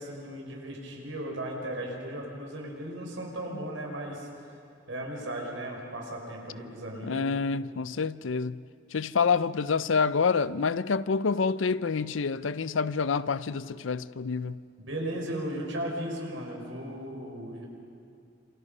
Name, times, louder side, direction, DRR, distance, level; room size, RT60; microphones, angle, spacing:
voice 1, 0.0-4.3 4.9-7.3 14.9-17.7, right 1 dB, 85° right, 5.9 m, -36 dB
voice 2, 7.0-8.6 8.9-14.6, left 5 dB, 85° left, 0.6 m, -27 dB
29.5 x 27.5 x 5.5 m
head